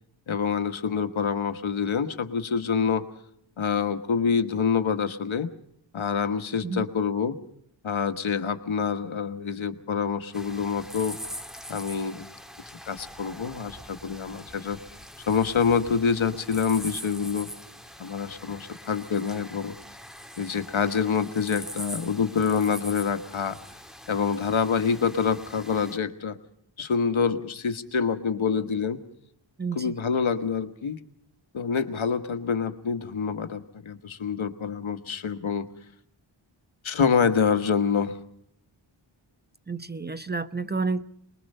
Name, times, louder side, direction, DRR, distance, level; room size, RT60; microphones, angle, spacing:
voice 1, 0.3-3.1 3.6-5.5 5.9-7.4 7.8-11.2 11.7-12.3 12.8-14.8 15.3-17.5 18.0-19.8 20.4-23.6 24.1-26.4 26.8-29.0 29.7-31.0 31.5-35.7 36.8-38.2, left 6 dB, 80° left, 10 dB, 1.4 m, -26 dB
sound 1, 10.3-26.0, equal, ahead, 1.8 m, -43 dB
voice 2, 29.6-30.0 39.7-41.0, right 4 dB, 20° right, 12 dB, 0.9 m, -30 dB
24.0 x 21.5 x 5.5 m, 0.70 s
wide cardioid pair, 65°, 47 cm